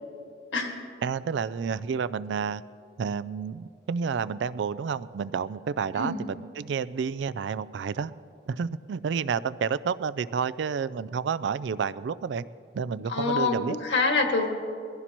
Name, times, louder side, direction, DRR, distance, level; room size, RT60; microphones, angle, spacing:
voice 1, 1.0-2.6 3.0-8.1 8.5-12.4 12.7-13.8, right 6 dB, 75° right, 17 dB, 0.3 m, -30 dB
voice 2, 13.1-14.5, left 3 dB, 90° left, 2 dB, 1.9 m, -26 dB
22.5 x 15.0 x 3.0 m, 2.4 s
head